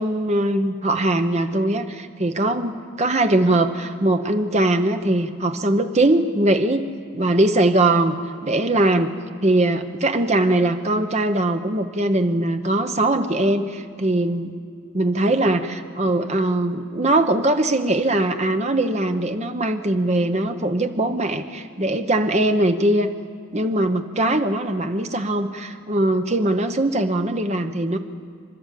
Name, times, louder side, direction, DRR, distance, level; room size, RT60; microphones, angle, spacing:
voice 1, 0.0-6.9 7.1-8.2 8.4-9.1 9.4-14.5 14.9-23.1 23.5-28.0, right 1 dB, 30° right, 7 dB, 1.0 m, -21 dB
28.0 x 12.0 x 7.6 m, 2.2 s
head